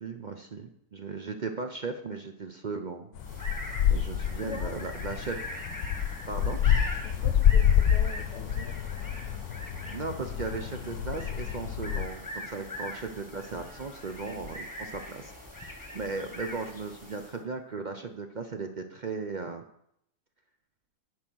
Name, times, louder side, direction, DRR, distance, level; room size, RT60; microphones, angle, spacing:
voice 1, 0.0-3.1 3.9-5.4 6.3-6.6 9.9-15.3 15.6-19.6, right 4 dB, 55° right, 5 dB, 0.5 m, -37 dB
sound 1, 3.1-12.1, left 9 dB, 80° left, 1.2 m, -28 dB
sound 2, 3.2-17.5, left 1 dB, 15° left, 1.2 m, -42 dB
voice 2, 7.0-8.7, left 8 dB, 60° left, 9 dB, 0.8 m, -43 dB
10.5 x 4.8 x 6.1 m, 0.74 s
omnidirectional pair, 1.6 m